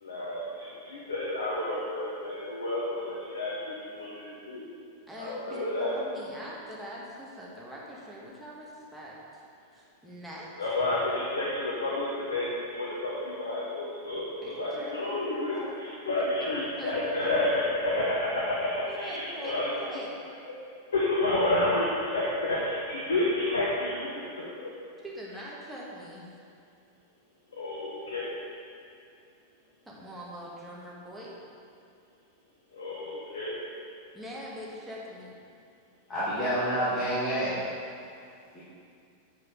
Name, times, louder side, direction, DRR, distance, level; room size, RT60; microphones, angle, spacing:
voice 1, 0.0-4.6 5.2-5.9 10.6-18.7 18.9-19.7 20.9-21.9 22.1-24.1 24.3-24.7 27.6-28.3 32.7-33.6, left 2 dB, 70° left, -5 dB, 1.2 m, -30 dB
voice 2, 5.1-9.4 9.7-10.5 14.4-14.9 15.5-15.7 16.4-16.9 17.2-17.3 18.9-20.2 25.0-26.3 29.8-31.3 34.1-35.3, equal, 5° right, -5 dB, 1.6 m, -43 dB
voice 3, 36.1-37.7 38.5-38.6, right 1 dB, 20° left, -12 dB, 1.9 m, -28 dB
8.4 x 4.9 x 4.9 m, 2.5 s
figure-of-eight pair, 90°, 0 cm